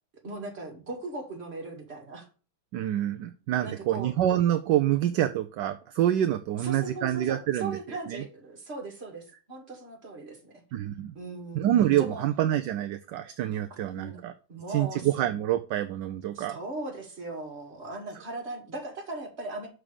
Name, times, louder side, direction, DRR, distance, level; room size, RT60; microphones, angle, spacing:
voice 1, 0.2-2.3 3.6-4.1 6.6-10.6 11.1-11.7 12.0-12.2 13.7-14.2 14.5-15.3 16.3-19.7, right 2 dB, 30° right, 1 dB, 2.2 m, -38 dB
voice 2, 2.7-7.8 8.1-8.2 10.7-11.1 11.5-14.3 14.7-16.6, right 12 dB, 70° right, 8 dB, 1.1 m, -27 dB
6.2 x 5.0 x 6.8 m, 0.36 s
omnidirectional pair, 2.2 m